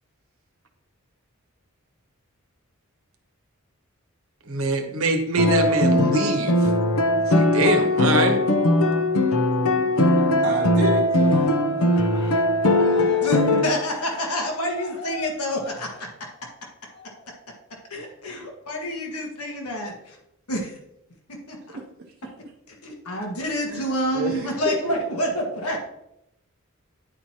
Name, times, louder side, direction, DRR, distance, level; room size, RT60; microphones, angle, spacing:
voice 1, 4.4-6.7 7.2-8.4, right 2 dB, 70° right, 0.9 m, -24 dB
sound 1, 5.4-13.6, left 1 dB, 70° left, 0.6 m, -20 dB
voice 2, 10.4-11.6 21.7-22.4 23.7-23.9 24.1-25.1, right 1 dB, 45° right, 0.6 m, -32 dB
Cheering, 11.2-16.4 16.9-17.3, left 3 dB, 50° left, 1.2 m, -42 dB
voice 3, 13.2-16.1 17.9-20.2 20.5-20.7 21.3-21.8 22.7-25.8, equal, 85° left, 1.4 m, -28 dB
9.7 x 4.4 x 2.9 m
head